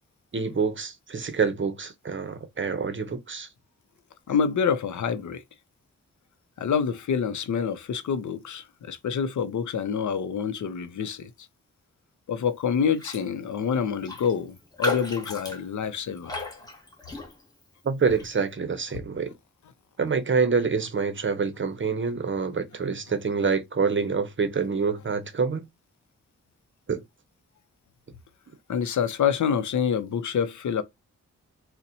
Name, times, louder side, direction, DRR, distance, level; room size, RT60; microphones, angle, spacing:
voice 1, 0.3-3.5 17.8-19.3 20.0-25.7 26.9-27.0, right 5 dB, 40° right, 0.7 m, -26 dB
voice 2, 4.3-5.4 6.6-11.3 12.3-16.3 28.7-30.8, left 7 dB, 70° left, 0.6 m, -27 dB
Raindrop, 13.0-13.3 13.6-13.7 14.0-17.6 18.1-18.3, left 3 dB, 15° left, 1.2 m, -34 dB
4.0 x 2.1 x 2.7 m
cardioid pair, 75°, 30 cm